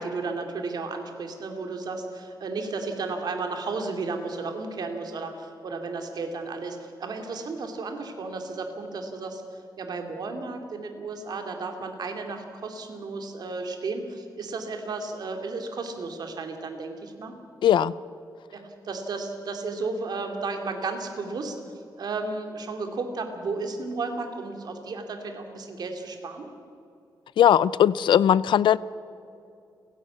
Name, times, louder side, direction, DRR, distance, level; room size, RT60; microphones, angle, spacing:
voice 1, 0.0-9.4 9.8-17.3 18.5-21.6 22.0-26.5, right 3 dB, 60° right, 4 dB, 2.5 m, -33 dB
voice 2, 17.6-17.9 27.4-28.8, left 10 dB, 85° left, 19 dB, 0.4 m, -19 dB
30.0 x 11.0 x 8.4 m, 2.5 s
wide cardioid pair, 160°, 8 cm